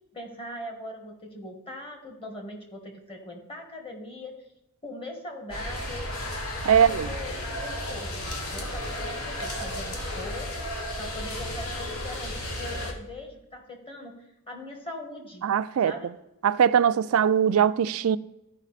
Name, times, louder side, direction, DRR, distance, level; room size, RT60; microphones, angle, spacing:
voice 1, 0.1-4.3 4.8-6.1 6.6-10.6 11.0-14.1 14.5-15.4 15.8-16.1, left 1 dB, 25° left, 1.5 m, -41 dB
sound 1, 5.5-12.9, left 1 dB, 70° left, 1.3 m, -33 dB
voice 2, 6.6-7.1 15.4-15.9 16.4-18.2, right 8 dB, 70° right, 0.3 m, -21 dB
13.0 x 4.9 x 4.1 m
head